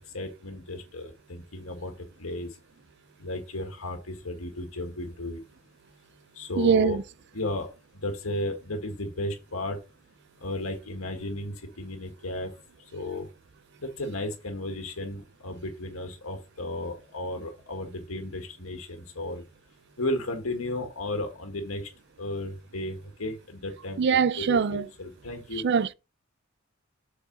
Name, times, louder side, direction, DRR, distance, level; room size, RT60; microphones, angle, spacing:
voice 1, 0.1-1.9 2.2-2.5 3.2-5.4 6.3-7.0 7.3-7.7 7.9-9.8 10.4-12.5 12.9-13.3 13.8-19.4 20.0-21.9 22.2-24.0 24.4-25.7, left 1 dB, 85° left, 1.7 m, -34 dB
voice 2, 6.6-7.0 24.0-24.9 25.6-25.9, right 6 dB, 55° right, 0.4 m, -22 dB
7.7 x 4.8 x 4.0 m
head